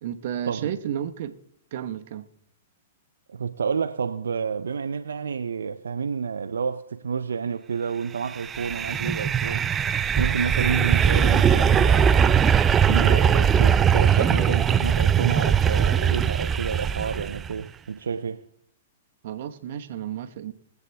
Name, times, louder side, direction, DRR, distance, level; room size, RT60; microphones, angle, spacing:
voice 1, 0.0-1.3 1.7-2.3 19.2-20.5, right 10 dB, 60° right, 1.1 m, -32 dB
voice 2, 3.3-9.7 10.2-12.4 12.9-18.5, right 6 dB, 80° right, 0.5 m, -29 dB
sound 1, 8.3-17.5, right 8 dB, 20° right, 0.4 m, -20 dB
22.0 x 8.3 x 3.4 m
hypercardioid pair, 115°, 0 cm